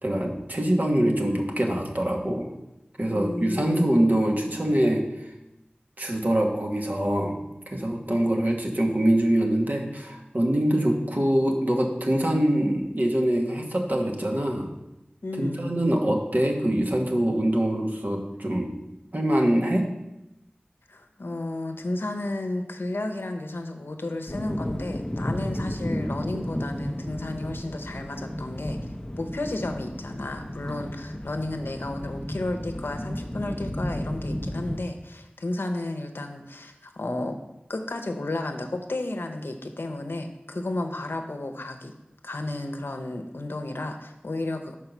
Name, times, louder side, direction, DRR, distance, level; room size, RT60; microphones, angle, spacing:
voice 1, 0.0-2.5 3.0-5.0 6.0-7.4 7.7-14.7 15.4-18.7 19.1-19.8 30.7-30.8, right 1 dB, 50° right, 1 dB, 1.2 m, -24 dB
voice 2, 3.1-4.0 15.2-15.7 20.9-28.8 29.2-37.4 37.7-41.9 42.2-44.7, left 2 dB, 85° left, 5 dB, 0.7 m, -32 dB
sound 1, 24.3-34.8, equal, 15° left, 0.6 m, -33 dB
5.6 x 4.7 x 5.9 m, 0.93 s
wide cardioid pair, 40°, 4 cm